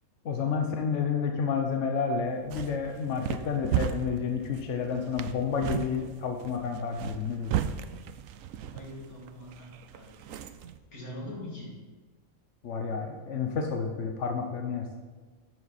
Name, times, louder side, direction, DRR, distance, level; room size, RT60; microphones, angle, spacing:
voice 1, 0.2-7.5 12.6-14.9, left 5 dB, 60° left, 3 dB, 1.1 m, -30 dB
sound 1, 2.3-10.8, right 9 dB, 70° right, 0.9 m, -36 dB
voice 2, 8.6-10.4 10.9-11.7, left 1 dB, 85° left, -4 dB, 3.1 m, -43 dB
12.0 x 7.6 x 4.2 m, 1.4 s
omnidirectional pair, 1.5 m